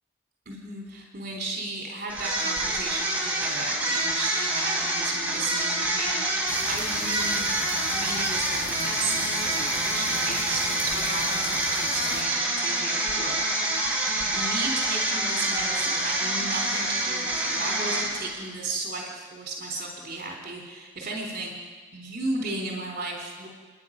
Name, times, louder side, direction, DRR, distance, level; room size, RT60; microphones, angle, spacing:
voice 1, 0.5-13.4 14.1-23.5, right 2 dB, 40° right, 0 dB, 3.6 m, -35 dB
sound 1, 2.1-18.4, right 1 dB, 5° right, 4.5 m, -27 dB
sound 2, 6.4-12.2, left 3 dB, 60° left, 3.4 m, -38 dB
30.0 x 10.5 x 9.9 m, 1.5 s
head